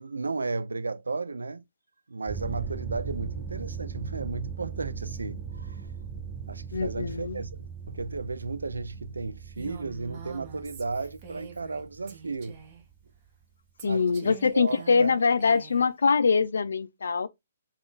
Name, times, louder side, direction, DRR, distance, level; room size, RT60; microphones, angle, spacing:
voice 1, 0.0-1.6 2.1-5.9 6.5-12.6 13.9-15.1, right 3 dB, 90° right, 0.3 m, -34 dB
sound 1, 2.3-13.1, right 6 dB, 25° right, 1.2 m, -39 dB
voice 2, 6.7-7.4 13.8-17.3, left 5 dB, 75° left, 0.4 m, -24 dB
Female speech woman speaking, 9.6-11.8 12.1-12.8 13.8-15.9, right 6 dB, 40° right, 0.9 m, -46 dB
2.4 x 2.3 x 3.6 m
hypercardioid pair, 140°, 0 cm